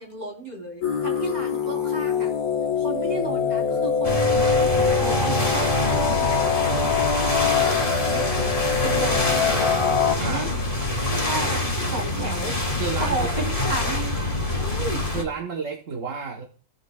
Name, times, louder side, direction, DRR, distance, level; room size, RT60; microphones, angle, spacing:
voice 1, 0.0-2.3 2.8-4.7 5.0-8.3 8.8-9.9 10.2-10.6 11.1-11.6 11.9-12.6 13.0-14.2 14.5-15.1, right 2 dB, 30° right, -1 dB, 3.4 m, -34 dB
sound 1, 0.8-10.2, left 6 dB, 85° left, 1.6 m, -24 dB
sound 2, 3.1-11.0, right 5 dB, 80° right, 1.0 m, -37 dB
sound 3, 4.0-15.2, left 1 dB, 25° left, 1.6 m, -25 dB
voice 2, 11.3-11.7 12.8-13.3 15.1-16.5, right 5 dB, 60° right, 2 dB, 1.4 m, -31 dB
17.0 x 6.4 x 2.2 m, 0.41 s
omnidirectional pair, 1.5 m